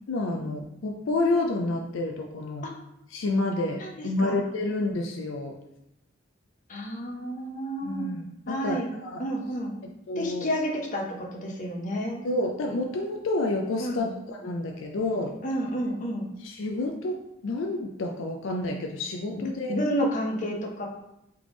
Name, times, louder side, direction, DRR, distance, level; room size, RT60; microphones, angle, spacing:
voice 1, 0.1-2.6 3.1-5.5 7.8-9.2 10.1-10.5 12.2-15.3 16.4-19.7, left 2 dB, 75° left, 1 dB, 0.4 m, -29 dB
voice 2, 3.8-4.4 6.7-8.1 8.5-8.9 9.2-9.8 10.2-12.2 13.8-14.1 15.4-16.3 19.7-20.9, equal, 40° left, 0 dB, 0.7 m, -30 dB
3.4 x 3.3 x 3.8 m, 0.85 s
head